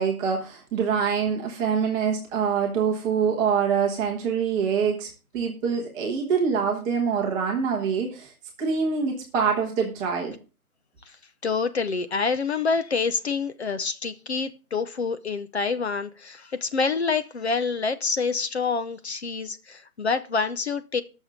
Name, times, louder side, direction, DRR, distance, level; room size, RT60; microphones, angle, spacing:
voice 1, 0.0-5.1 5.3-8.3 8.6-10.3, right 6 dB, 5° right, 1.0 m, -25 dB
voice 2, 11.4-21.0, left 4 dB, 50° left, 0.9 m, -27 dB
19.5 x 6.4 x 3.7 m
figure-of-eight pair, 155°, 43 cm